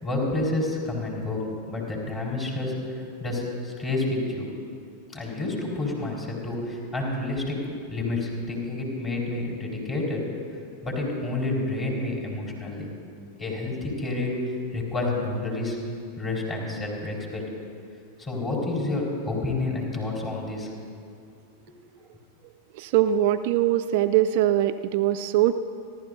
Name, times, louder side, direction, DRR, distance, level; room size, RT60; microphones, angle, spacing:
voice 1, 0.0-4.5 5.1-7.6 7.9-10.2 10.8-12.9 13.4-14.4 14.7-15.8 16.2-17.4 18.2-20.7, left 2 dB, 25° left, -3 dB, 4.5 m, -29 dB
voice 2, 22.7-25.5, right 12 dB, 50° right, 10 dB, 0.4 m, -22 dB
29.0 x 12.5 x 2.7 m, 2.4 s
figure-of-eight pair, 90°, 0 cm